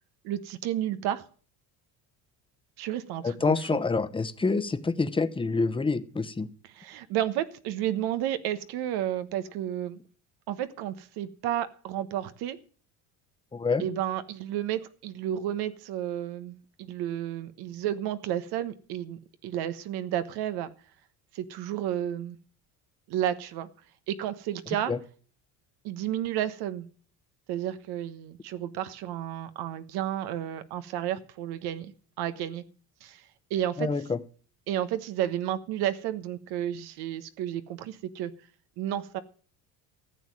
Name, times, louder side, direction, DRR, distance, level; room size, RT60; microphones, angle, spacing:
voice 1, 0.2-1.2 2.8-3.6 6.6-10.0 10.5-12.6 13.8-20.7 21.3-22.4 23.1-23.7 24.1-24.9 25.8-26.9 27.5-32.6 33.0-33.2 33.5-33.9 34.7-38.3 38.8-39.2, right 11 dB, 70° right, 1.2 m, -32 dB
voice 2, 3.2-6.5 13.5-13.8 24.9-25.0 33.8-34.2, left 4 dB, 15° left, 1.0 m, -27 dB
14.5 x 7.4 x 7.6 m
cardioid pair, 115°, 39 cm